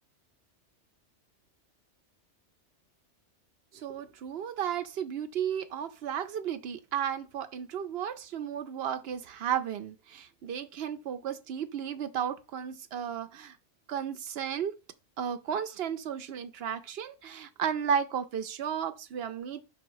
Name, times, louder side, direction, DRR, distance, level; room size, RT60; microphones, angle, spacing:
voice 1, 3.7-13.6 13.9-14.7 15.2-19.6, right 8 dB, 65° right, 0.8 m, -34 dB
5.1 x 3.9 x 4.6 m
omnidirectional pair, 1.2 m